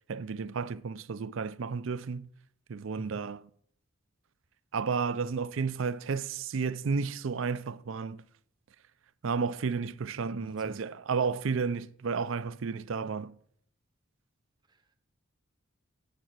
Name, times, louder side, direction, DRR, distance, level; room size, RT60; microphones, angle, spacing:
voice 1, 0.1-2.3 2.7-3.4 4.7-8.2 9.2-13.3, right 5 dB, 65° right, 0.5 m, -32 dB
voice 2, 10.4-10.8 14.7-15.0, right 1 dB, 20° right, 0.7 m, -48 dB
8.9 x 7.7 x 7.5 m
head